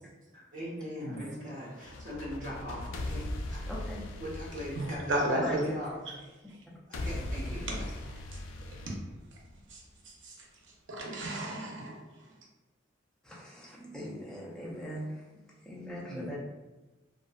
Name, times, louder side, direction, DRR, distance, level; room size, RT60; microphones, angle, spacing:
voice 1, 0.3-3.6 4.2-6.0 6.9-7.9, equal, 45° right, -6 dB, 0.9 m, -40 dB
voice 2, 1.0-1.3 4.8-5.6 7.7-7.8 8.9-9.0 9.7-10.4 10.9-12.0 16.1-16.4, right 1 dB, 75° right, -1 dB, 0.6 m, -33 dB
sound 1, 1.7-5.8 6.9-9.8, left 1 dB, 90° left, 0.3 m, -39 dB
voice 3, 3.7-4.1 5.4-5.7 6.4-6.5 13.2-15.3 15.6-16.4, equal, 5° left, -5 dB, 0.4 m, -41 dB
2.5 x 2.2 x 2.2 m, 1.1 s
head